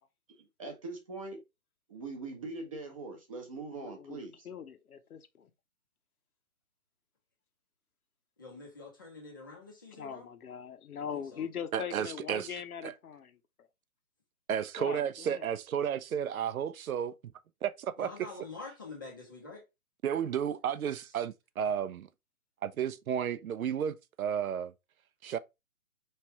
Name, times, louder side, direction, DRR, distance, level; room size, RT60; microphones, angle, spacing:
voice 1, 0.4-1.4 1.9-4.5, right 3 dB, 25° right, 0.8 m, -42 dB
voice 2, 3.8-4.2 4.4-5.5 10.0-13.4 14.8-15.4, left 8 dB, 75° left, 0.9 m, -41 dB
voice 3, 8.4-10.3 11.0-11.5 18.0-19.6, left 3 dB, 15° left, 0.6 m, -46 dB
voice 4, 11.7-12.5 12.8-12.9 14.5-17.1 17.6-18.1 20.0-22.1 22.6-24.7 25.2-25.4, right 8 dB, 70° right, 0.6 m, -32 dB
4.6 x 3.3 x 2.9 m
hypercardioid pair, 165°, 44 cm